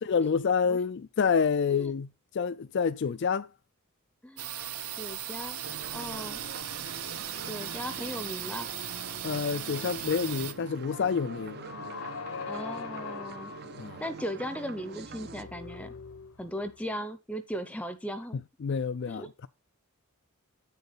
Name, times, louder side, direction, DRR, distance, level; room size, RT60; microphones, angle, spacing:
voice 1, 0.0-3.5 9.2-11.6 13.8-14.0 18.6-19.5, left 6 dB, 50° left, 0.4 m, -28 dB
sound 1, 4.4-10.5, right 10 dB, 80° right, 1.1 m, -37 dB
voice 2, 5.0-5.6 5.9-6.4 7.5-8.7 12.5-13.5 14.0-15.9 16.4-18.4 19.1-19.3, equal, 5° left, 0.7 m, -37 dB
sound 2, 5.6-15.4, right 4 dB, 45° right, 0.6 m, -45 dB
sound 3, 10.9-16.9, left 5 dB, 70° left, 1.0 m, -43 dB
8.9 x 6.7 x 4.0 m
head